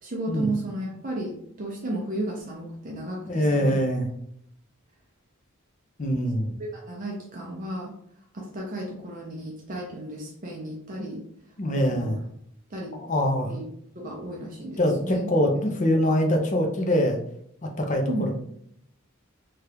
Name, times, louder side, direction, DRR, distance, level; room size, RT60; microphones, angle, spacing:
voice 1, 0.0-3.8 6.1-6.2 6.6-7.9 8.3-11.2 11.7-12.1 12.7-12.9 13.5-13.6 14.0-15.3 18.1-18.3, right 1 dB, 35° right, -1 dB, 0.5 m, -33 dB
voice 2, 3.3-4.1 6.0-6.5 11.6-12.2 12.9-13.5 14.8-17.2 17.6-18.3, equal, 35° left, 2 dB, 0.5 m, -24 dB
2.8 x 2.3 x 3.4 m, 0.70 s
head